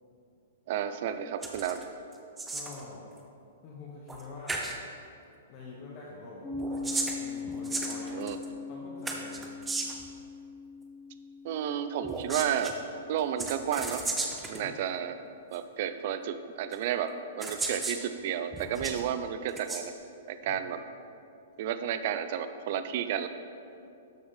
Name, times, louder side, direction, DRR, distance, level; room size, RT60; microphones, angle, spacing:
voice 1, 0.7-1.8 8.1-8.4 11.4-12.8 13.1-14.0 14.5-15.2 15.5-19.9 20.3-20.8 21.6-23.3, right 9 dB, 45° right, 10 dB, 0.4 m, -32 dB
sound 1, 1.4-1.8 2.1-2.8 4.1-4.2 4.5-4.8 6.5-8.5 9.1-10.1 12.0-12.7 13.4-14.6 15.5-15.6 16.7-16.8 17.4-18.0 18.5-19.0 19.5-19.8, right 3 dB, 5° right, 0.7 m, -35 dB
voice 2, 2.5-3.0 3.6-4.6 5.5-8.2 8.7-9.5 14.5-14.8 20.4-20.6, left 3 dB, 30° left, -5 dB, 1.2 m, -46 dB
Piano, 6.4-13.6, left 4 dB, 10° left, 1.1 m, -41 dB
12.5 x 5.9 x 4.2 m, 2.6 s
hypercardioid pair, 165°, 0 cm